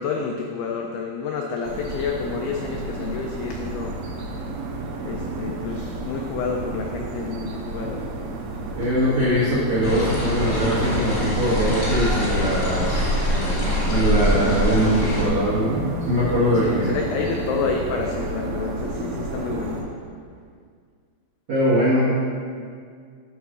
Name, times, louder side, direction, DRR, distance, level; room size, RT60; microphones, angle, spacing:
voice 1, 0.0-4.0 5.1-8.0 16.5-19.8, left 5 dB, 85° left, 2 dB, 2.3 m, -29 dB
sound 1, 1.6-19.8, right 2 dB, 85° right, 3.4 m, -31 dB
voice 2, 8.7-13.1 13.9-16.9 21.5-22.1, equal, 65° right, -9 dB, 1.4 m, -21 dB
sound 2, 9.8-15.2, equal, 70° left, 0.9 m, -24 dB
10.5 x 4.2 x 6.2 m, 2.1 s
omnidirectional pair, 5.3 m